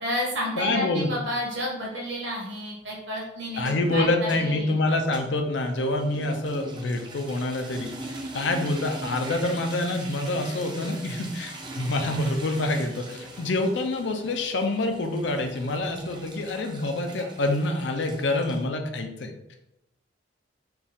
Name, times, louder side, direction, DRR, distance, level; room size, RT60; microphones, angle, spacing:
voice 1, 0.0-4.8, equal, 65° right, -3 dB, 1.4 m, -31 dB
voice 2, 0.6-1.1 3.6-7.9 8.3-19.6, left 2 dB, 65° left, 4 dB, 0.5 m, -26 dB
sound 1, 3.5-18.6, right 2 dB, 25° right, 0.5 m, -41 dB
4.4 x 2.4 x 3.5 m, 0.85 s
head